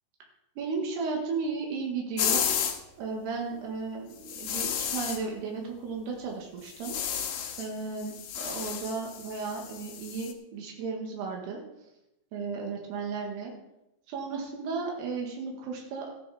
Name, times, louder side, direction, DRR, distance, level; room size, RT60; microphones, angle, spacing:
voice 1, 0.6-2.4 3.0-7.0 7.6-11.6 12.3-13.5 14.1-16.1, right 4 dB, 80° right, 0 dB, 3.9 m, -34 dB
sound 1, 2.2-2.8 4.2-5.2 6.7-7.7 8.0-10.3, left 8 dB, 80° left, 3.2 m, -32 dB
15.0 x 10.5 x 4.2 m, 0.88 s
omnidirectional pair, 4.6 m